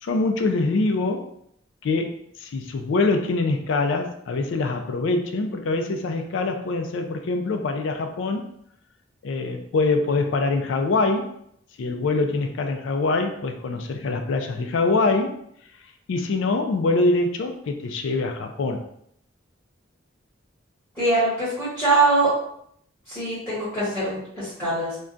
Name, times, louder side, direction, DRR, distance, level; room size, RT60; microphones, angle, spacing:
voice 1, 0.0-1.3 1.8-8.5 9.2-11.3 11.8-15.4 16.1-18.9, left 3 dB, 75° left, 5 dB, 0.4 m, -24 dB
voice 2, 21.0-22.3 23.1-25.0, right 2 dB, 5° left, -12 dB, 1.1 m, -22 dB
2.3 x 2.2 x 3.8 m, 0.70 s
head